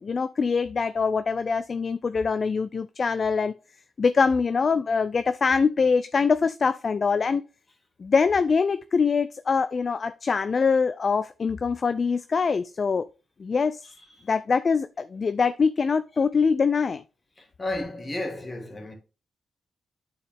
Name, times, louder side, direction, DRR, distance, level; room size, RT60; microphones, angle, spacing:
voice 1, 0.0-3.5 4.0-7.4 8.0-13.0 13.4-13.8 14.3-17.0, left 5 dB, 50° left, 0.4 m, -23 dB
voice 2, 17.4-18.9, left 2 dB, 35° left, 2.7 m, -33 dB
8.7 x 4.7 x 3.5 m
supercardioid pair, 45°, 0 cm